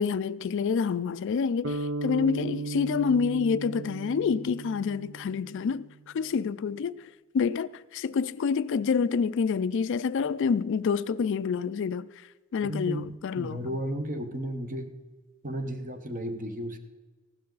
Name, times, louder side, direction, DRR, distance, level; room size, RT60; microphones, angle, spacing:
voice 1, 0.0-5.9 6.1-7.0 7.3-12.1 12.5-13.6, left 6 dB, 60° left, 0.4 m, -27 dB
sound 1, 1.6-5.9, right 3 dB, 60° right, 0.8 m, -36 dB
voice 2, 12.6-14.9 15.4-16.8, right 1 dB, 40° right, 1.1 m, -34 dB
15.5 x 12.0 x 3.9 m
head